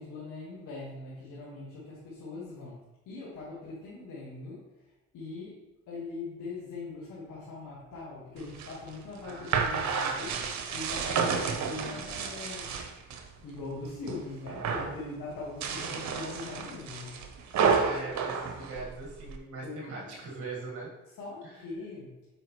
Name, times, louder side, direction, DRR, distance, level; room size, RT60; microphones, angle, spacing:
voice 1, 0.0-12.9 13.4-17.2 19.6-20.2 21.2-22.2, left 3 dB, 85° left, -8 dB, 1.8 m, -41 dB
sound 1, 8.4-13.3 13.6-14.2 14.5-15.0 15.5-19.4, right 5 dB, 65° right, 0.9 m, -31 dB
voice 2, 9.2-10.4 17.8-20.9 21.4-21.5, right 3 dB, 50° right, -3 dB, 1.7 m, -41 dB
7.6 x 4.8 x 3.1 m, 1.0 s
cardioid pair, 90°, 30 cm